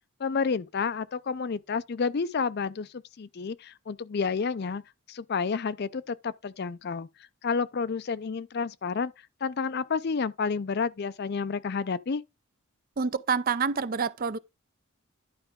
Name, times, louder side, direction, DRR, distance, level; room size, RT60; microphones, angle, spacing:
voice 1, 0.2-4.8 5.1-7.1 7.4-9.1 9.4-12.2, left 5 dB, 50° left, 0.4 m, -30 dB
voice 2, 13.0-14.4, right 5 dB, 40° right, 0.5 m, -27 dB
11.0 x 4.9 x 3.6 m
head